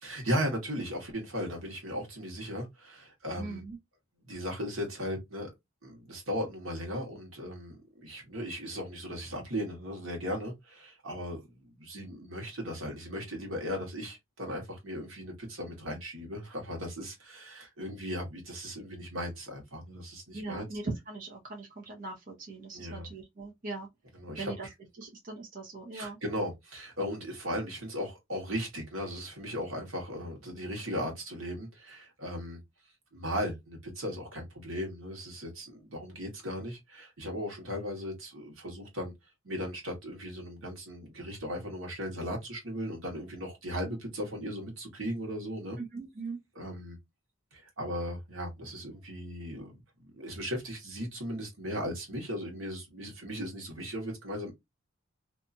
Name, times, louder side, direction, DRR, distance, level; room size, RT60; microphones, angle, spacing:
voice 1, 0.0-3.6 4.2-5.5 5.8-20.7 22.7-23.1 24.2-24.5 25.9-32.6 33.1-39.1 39.4-45.8 46.6-47.0 47.5-49.7 50.1-54.5, equal, 90° right, 1.3 m, -37 dB
voice 2, 3.4-3.8 20.3-23.9 24.4-24.7 25.0-26.2 45.8-46.4, right 3 dB, 40° right, 0.9 m, -40 dB
2.7 x 2.4 x 2.6 m
head